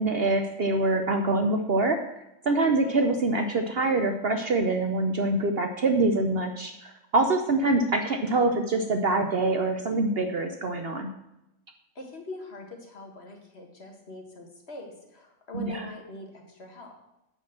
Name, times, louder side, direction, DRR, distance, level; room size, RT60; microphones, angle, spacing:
voice 1, 0.0-2.0 2.4-11.1 15.5-15.9, right 2 dB, 55° right, 5 dB, 0.8 m, -25 dB
voice 2, 12.0-16.9, left 2 dB, 45° left, 2 dB, 1.8 m, -42 dB
10.5 x 4.3 x 7.5 m, 0.89 s
omnidirectional pair, 1.5 m